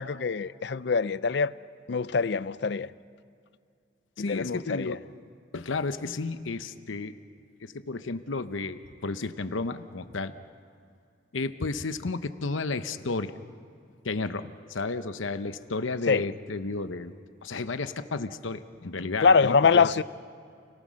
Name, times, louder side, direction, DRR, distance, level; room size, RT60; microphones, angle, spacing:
voice 1, 0.0-1.5 1.9-2.9 4.2-5.0 16.1-16.3 19.2-20.0, left 5 dB, 60° left, 0.5 m, -24 dB
voice 2, 4.2-5.0 5.5-7.2 7.6-10.3 11.3-13.3 14.0-17.1 17.4-19.9, left 3 dB, 80° left, 0.8 m, -32 dB
29.5 x 18.5 x 6.4 m
head